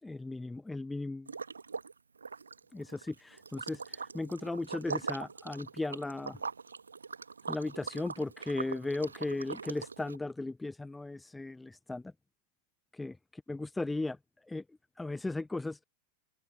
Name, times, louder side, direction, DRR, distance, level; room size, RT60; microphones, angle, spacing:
voice 1, 0.0-1.3 2.7-6.4 7.5-12.1 12.9-14.2 14.4-14.6 15.0-15.8, left 2 dB, 5° left, 0.6 m, -36 dB
Liquid, 1.3-10.2, right 5 dB, 75° right, 1.3 m, -41 dB
open air
figure-of-eight pair, 90°, 0 cm